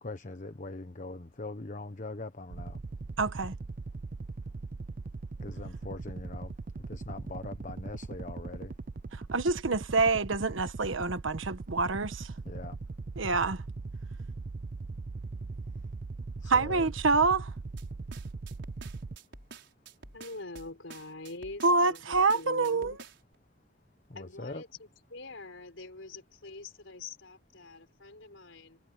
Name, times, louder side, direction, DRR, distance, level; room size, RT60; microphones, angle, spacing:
voice 1, 0.0-2.8 5.4-6.5 6.9-8.7 12.4-12.8 16.4-16.9 24.1-24.6, left 2 dB, 40° left, 1.2 m, -41 dB
sound 1, 2.5-19.2, right 3 dB, 45° right, 0.5 m, -40 dB
voice 2, 3.2-3.5 9.1-12.3 13.2-13.6 16.5-17.5 21.6-22.9, right 3 dB, 90° right, 1.3 m, -27 dB
sound 2, 17.8-23.3, right 4 dB, 65° right, 6.1 m, -49 dB
voice 3, 20.1-23.0 24.1-28.8, left 3 dB, 85° left, 4.0 m, -45 dB
head